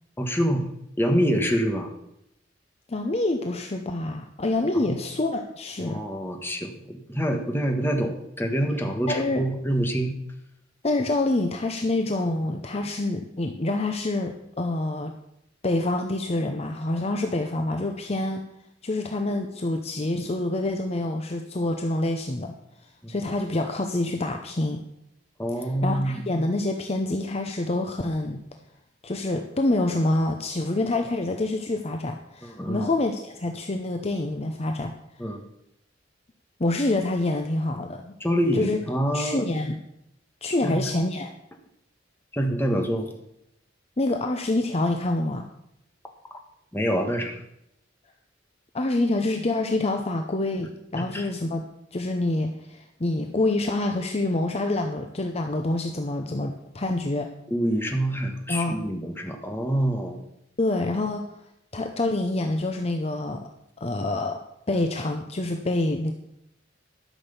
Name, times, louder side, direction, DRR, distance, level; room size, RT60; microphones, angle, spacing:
voice 1, 0.2-0.6 1.0-1.9 4.7-4.9 5.8-10.1 23.0-23.1 25.4-26.2 32.4-32.9 35.2-35.4 38.2-39.4 40.6-40.8 42.3-43.1 46.7-47.3 51.1-51.2 57.5-60.2, equal, 10° left, 3 dB, 1.4 m, -26 dB
voice 2, 2.9-6.0 9.1-9.4 10.8-15.1 15.6-18.4 18.8-22.6 23.1-24.8 25.6-28.4 29.0-34.9 36.6-38.2 38.5-38.8 39.1-39.8 40.4-41.3 44.0-45.5 48.7-57.3 58.5-58.8 60.6-61.3 61.7-63.5 63.8-64.4 64.7-66.1, left 2 dB, 35° left, 4 dB, 0.7 m, -26 dB
12.5 x 6.3 x 7.0 m, 0.80 s
head